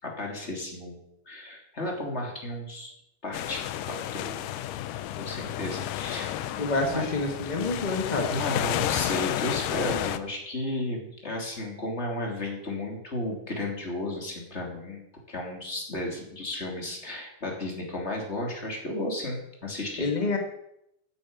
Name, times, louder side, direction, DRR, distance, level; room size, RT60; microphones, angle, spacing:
voice 1, 0.0-2.9 3.2-4.4 5.2-6.7 6.9-7.0 8.3-20.1, left 1 dB, 20° left, 0 dB, 3.0 m, -34 dB
sound 1, 3.3-10.2, left 13 dB, 80° left, 2.3 m, -31 dB
voice 2, 6.6-8.3 20.0-20.4, left 3 dB, 35° left, 2 dB, 0.6 m, -27 dB
9.9 x 9.5 x 9.0 m, 0.81 s
omnidirectional pair, 3.8 m